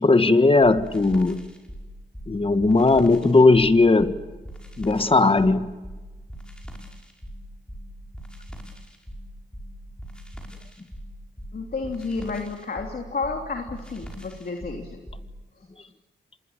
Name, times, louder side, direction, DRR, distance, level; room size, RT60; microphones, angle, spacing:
voice 1, 0.0-1.4 2.3-4.2 4.8-5.7, left 3 dB, 30° left, 1.6 m, -17 dB
sound 1, 0.6-15.3, equal, 5° left, 5.9 m, -41 dB
voice 2, 11.5-15.0 15.6-15.7, left 4 dB, 50° left, 3.1 m, -31 dB
27.0 x 21.0 x 8.9 m
cardioid pair, 60°, 19 cm